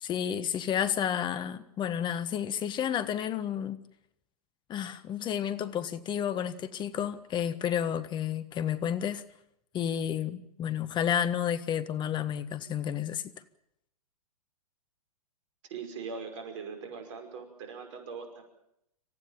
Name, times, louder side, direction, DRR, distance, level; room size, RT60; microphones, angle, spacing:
voice 1, 0.0-3.8 4.7-9.2 9.7-13.2, left 9 dB, 25° left, 13 dB, 1.5 m, -31 dB
voice 2, 15.7-18.4, right 5 dB, 50° right, 5 dB, 5.5 m, -41 dB
27.0 x 15.0 x 9.0 m, 0.81 s
figure-of-eight pair, 115°, 20 cm